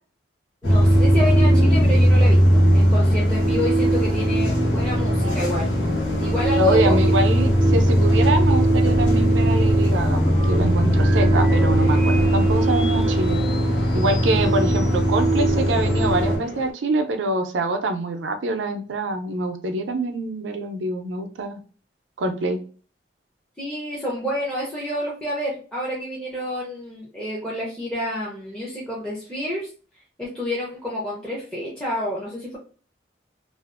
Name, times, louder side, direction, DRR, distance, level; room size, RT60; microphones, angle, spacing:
sound 1, 0.6-16.4, right 1 dB, 90° left, 0.9 m, -18 dB
voice 1, 0.6-5.7 6.2-7.1 7.7-7.9 23.6-29.7 30.2-32.6, left 1 dB, 5° left, -6 dB, 0.6 m, -29 dB
voice 2, 6.6-13.4 13.9-21.6 22.2-22.6, right 2 dB, 85° right, 7 dB, 0.5 m, -25 dB
sound 2, 10.3-16.1, equal, 25° left, 0.9 m, -40 dB
sound 3, 11.5-16.7, left 3 dB, 50° left, 0.6 m, -36 dB
2.5 x 2.3 x 2.4 m, 0.39 s
head